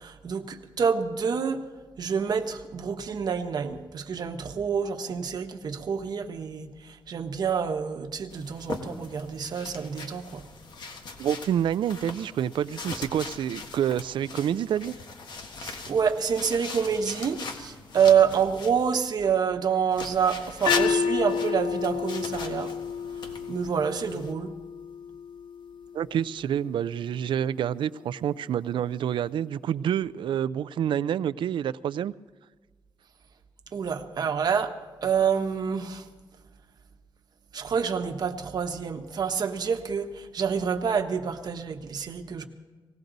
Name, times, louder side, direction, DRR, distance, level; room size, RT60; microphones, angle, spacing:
voice 1, 0.0-1.6 2.0-10.5 15.6-22.7 23.5-24.5 33.7-34.8 35.0-36.1 37.5-42.5, right 7 dB, 55° right, 1.1 m, -27 dB
sound 1, 8.3-18.9 19.9-24.3, left 4 dB, 65° left, 1.6 m, -39 dB
voice 2, 11.2-15.0 25.9-32.1, right 9 dB, 80° right, 0.4 m, -28 dB
sound 2, 20.7-26.8, left 7 dB, 90° left, 0.6 m, -31 dB
19.0 x 17.0 x 4.0 m
wide cardioid pair, 125°, 8 cm